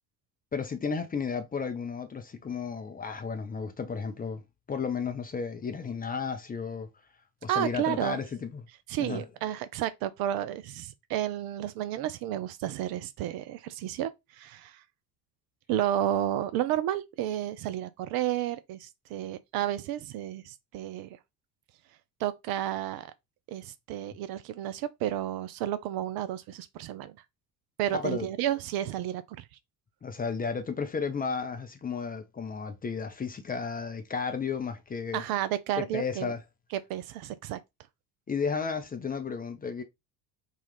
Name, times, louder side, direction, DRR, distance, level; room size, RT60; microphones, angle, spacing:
voice 1, 0.5-4.4 4.7-6.9 7.4-8.7 9.0-9.2 27.9-28.3 30.0-35.2 35.8-36.4 38.3-39.8, left 5 dB, 20° left, 0.6 m, -33 dB
voice 2, 7.5-8.2 8.9-14.8 15.7-21.2 22.2-23.1 23.5-27.2 27.8-29.2 35.1-36.3 36.7-37.6, right 12 dB, 50° right, 0.5 m, -31 dB
4.0 x 2.3 x 3.1 m
figure-of-eight pair, 60°, 50 cm